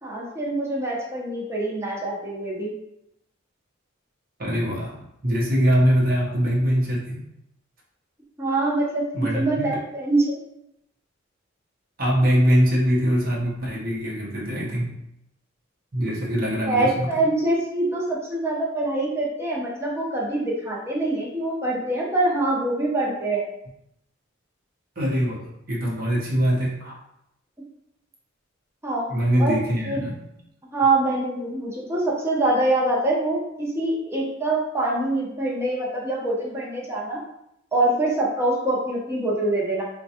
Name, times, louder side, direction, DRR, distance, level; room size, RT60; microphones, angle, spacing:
voice 1, 0.0-2.7 8.4-10.4 16.6-23.4 28.8-29.1 29.4-29.6 29.8-30.0 30.7-37.2 37.7-39.8, right 2 dB, 15° right, -4 dB, 0.7 m, -24 dB
voice 2, 4.4-7.2 9.1-9.8 12.0-15.0 15.9-17.1 25.0-27.0 29.1-30.2, equal, 50° right, -3 dB, 0.8 m, -23 dB
3.8 x 2.2 x 2.7 m, 0.80 s
head